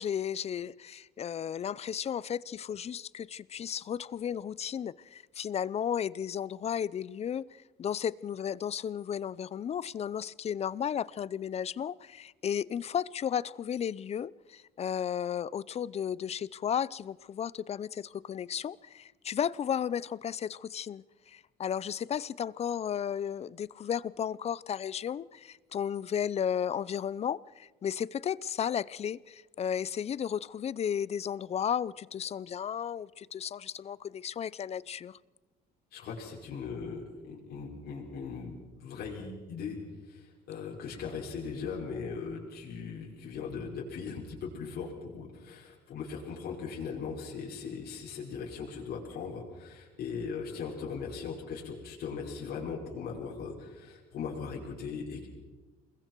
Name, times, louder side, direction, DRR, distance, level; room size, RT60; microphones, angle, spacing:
voice 1, 0.0-35.2, left 8 dB, 40° left, 0.6 m, -34 dB
voice 2, 35.9-39.8 40.0-55.3, left 5 dB, 65° left, 5.5 m, -39 dB
27.5 x 21.5 x 4.6 m
cardioid pair, 110°, 17 cm